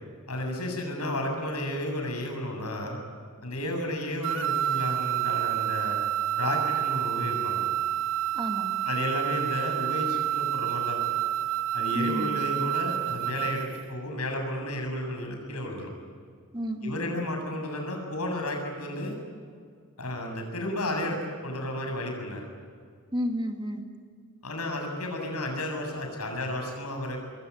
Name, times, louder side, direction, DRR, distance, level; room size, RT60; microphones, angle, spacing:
voice 1, 0.3-3.0 3.4-6.0 6.3-7.7 8.9-11.0 11.7-15.9 16.8-19.1 20.0-22.4 24.4-27.2, left 1 dB, 90° left, 3 dB, 7.7 m, -32 dB
sound 1, 4.2-13.8, right 12 dB, 60° right, 1.3 m, -29 dB
voice 2, 8.3-8.9 11.9-12.5 16.5-17.2 23.1-23.8, equal, 20° right, 4 dB, 2.2 m, -32 dB
25.5 x 23.0 x 9.7 m, 2.1 s
head